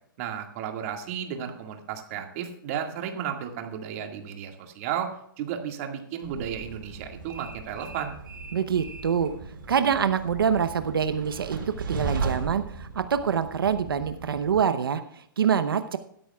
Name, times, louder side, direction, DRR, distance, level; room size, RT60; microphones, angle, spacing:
voice 1, 0.2-5.1 5.4-8.2, right 8 dB, 40° right, 4 dB, 2.0 m, -33 dB
Train, 6.2-14.6, right 4 dB, 70° right, 4.2 m, -37 dB
voice 2, 8.5-9.3 9.7-11.6 11.9-16.0, right 7 dB, 90° right, 10 dB, 0.9 m, -25 dB
15.0 x 13.0 x 2.4 m, 0.70 s
hypercardioid pair, 155°, 12 cm